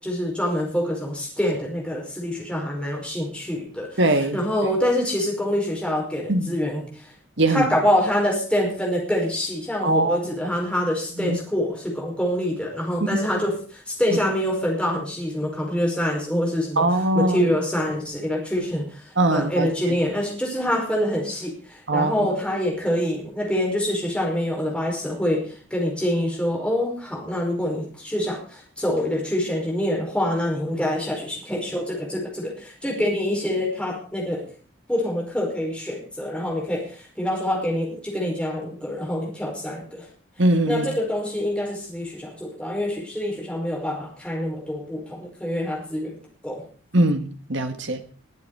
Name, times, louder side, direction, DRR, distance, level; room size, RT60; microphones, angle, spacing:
voice 1, 0.0-4.0 4.3-6.8 7.5-16.8 17.1-34.4 34.9-40.1 40.7-46.2 46.4-46.6, equal, 5° left, 5.1 m, -25 dB
voice 2, 4.0-4.4 6.3-6.6 7.4-7.7 9.8-10.2 11.2-11.4 14.1-14.2 16.8-17.5 19.2-20.0 21.9-22.3 40.4-40.9 46.9-48.0, right 1 dB, 65° right, 1.7 m, -21 dB
21.0 x 8.3 x 4.8 m
head